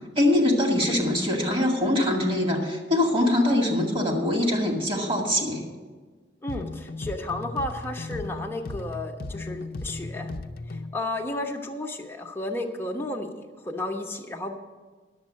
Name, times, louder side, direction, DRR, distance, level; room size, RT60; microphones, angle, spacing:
voice 1, 0.2-5.6, left 1 dB, 30° right, 0 dB, 2.1 m, -23 dB
voice 2, 6.4-10.3 10.7-14.6, left 2 dB, 15° left, 1 dB, 1.0 m, -33 dB
sound 1, 6.5-11.0, left 2 dB, 55° left, 0.6 m, -36 dB
10.5 x 7.5 x 7.5 m, 1.4 s
head